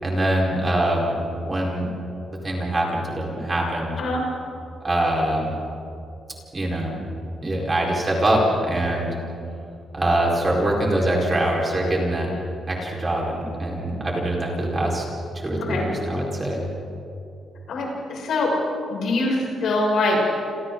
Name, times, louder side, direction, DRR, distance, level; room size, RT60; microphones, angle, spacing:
voice 1, 0.0-1.2 1.5-1.9 2.3-4.0 4.8-5.5 6.5-7.1 7.4-9.1 9.9-12.3 12.7-15.0 15.3-16.6, right 1 dB, 20° right, -2 dB, 4.7 m, -23 dB
voice 2, 17.7-18.5 18.9-20.2, left 2 dB, 70° left, -2 dB, 6.8 m, -23 dB
29.0 x 27.0 x 3.9 m, 2.7 s
cardioid pair, 140°, 0 cm